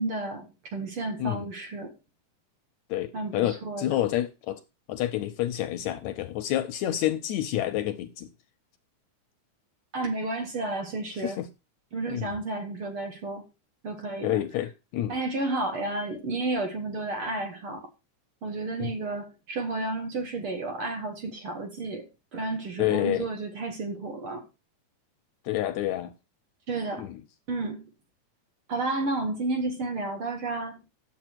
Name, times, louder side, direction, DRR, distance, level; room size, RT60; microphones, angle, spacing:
voice 1, 0.0-1.9 3.1-3.9 9.9-11.4 11.9-13.5 13.8-14.4 15.1-17.8 18.4-24.5 26.7-27.1 27.5-27.9 28.7-30.8, right 2 dB, 55° right, 1.8 m, -32 dB
voice 2, 2.9-4.6 4.9-8.3 11.2-11.5 12.1-12.3 14.2-15.2 18.8-18.9 22.8-23.3 25.5-26.1 27.0-27.2, left 13 dB, 75° left, 1.7 m, -28 dB
10.0 x 7.4 x 4.4 m
omnidirectional pair, 3.7 m